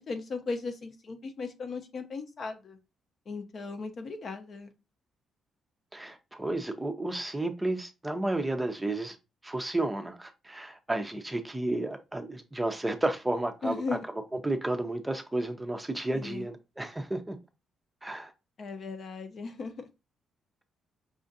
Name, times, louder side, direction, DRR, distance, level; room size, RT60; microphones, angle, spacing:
voice 1, 0.0-2.8 3.3-4.7 13.6-14.1 16.1-16.5 18.6-19.8, left 4 dB, 50° left, 0.7 m, -37 dB
voice 2, 5.9-9.2 9.4-13.8 14.4-17.4 18.0-18.3, right 2 dB, 10° right, 0.5 m, -32 dB
4.9 x 2.4 x 2.6 m
cardioid pair, 90°, 0 cm